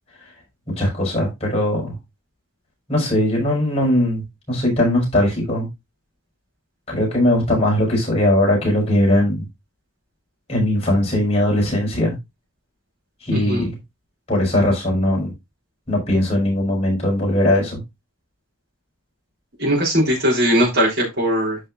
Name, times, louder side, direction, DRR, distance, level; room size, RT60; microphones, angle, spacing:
voice 1, 0.8-2.0 2.9-5.7 6.9-9.5 10.5-12.2 13.2-13.8 14.3-15.3 15.9-17.8, left 1 dB, 30° left, 6.1 m, -19 dB
voice 2, 13.3-13.7 19.6-21.6, equal, 55° right, 3.9 m, -19 dB
13.0 x 5.6 x 2.6 m
head